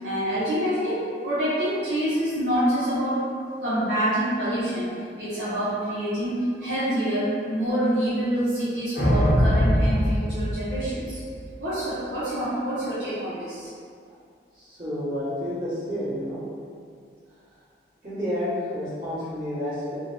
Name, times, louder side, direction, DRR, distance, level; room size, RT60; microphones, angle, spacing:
voice 1, 0.0-3.2 3.6-4.9 5.2-11.2 11.6-13.7, equal, 80° right, -13 dB, 0.7 m, -26 dB
sound 1, 9.0-11.4, equal, 65° left, 0.8 m, -22 dB
voice 2, 14.6-16.4 18.0-20.0, left 1 dB, 45° right, -14 dB, 1.5 m, -30 dB
3.1 x 2.1 x 2.6 m, 2.2 s
head